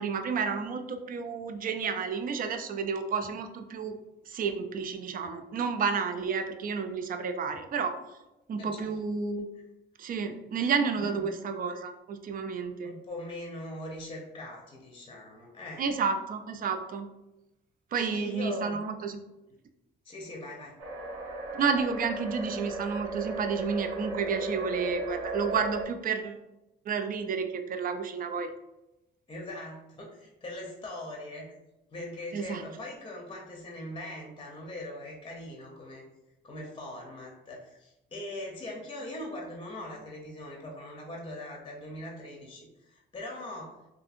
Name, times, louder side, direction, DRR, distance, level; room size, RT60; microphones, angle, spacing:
voice 1, 0.0-4.0 4.3-8.0 8.5-9.5 10.0-12.9 15.8-17.1 17.9-19.2 21.5-26.4 26.9-28.5 32.3-32.6, right 5 dB, 45° right, 7 dB, 0.4 m, -31 dB
voice 2, 8.6-9.0 11.0-11.2 12.8-15.8 17.9-18.8 20.0-20.8 29.3-31.6 31.9-36.0 36.4-43.8, left 1 dB, 25° left, -1 dB, 0.6 m, -41 dB
sound 1, 20.8-25.8, right 2 dB, 85° right, 0.8 m, -36 dB
2.6 x 2.6 x 2.4 m, 0.96 s
cardioid pair, 90°, 20 cm